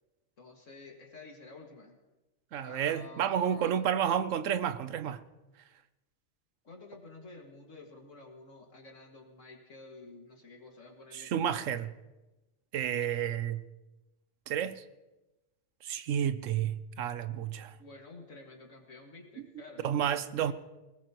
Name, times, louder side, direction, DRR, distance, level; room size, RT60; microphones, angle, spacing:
voice 1, 0.4-2.0 2.6-3.8 6.6-11.5 12.8-13.3 17.8-20.2 20.5-20.6, left 3 dB, 75° left, 2.5 m, -51 dB
voice 2, 2.5-5.2 11.1-11.9 12.7-13.6 14.5-14.8 15.8-17.8 19.8-20.5, right 9 dB, 85° right, 1.1 m, -31 dB
20.0 x 18.5 x 3.0 m
omnidirectional pair, 1.3 m